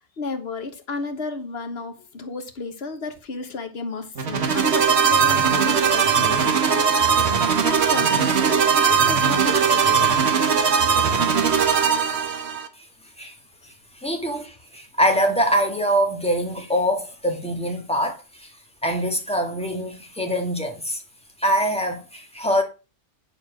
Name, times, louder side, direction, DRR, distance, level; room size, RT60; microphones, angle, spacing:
voice 1, 0.2-10.2, left 4 dB, 60° left, 1.6 m, -33 dB
sound 1, 4.2-12.7, right 6 dB, 65° right, 1.4 m, -19 dB
voice 2, 13.9-18.5 18.8-21.0 21.4-22.6, equal, 5° left, 1.9 m, -24 dB
10.0 x 4.6 x 6.1 m
omnidirectional pair, 1.2 m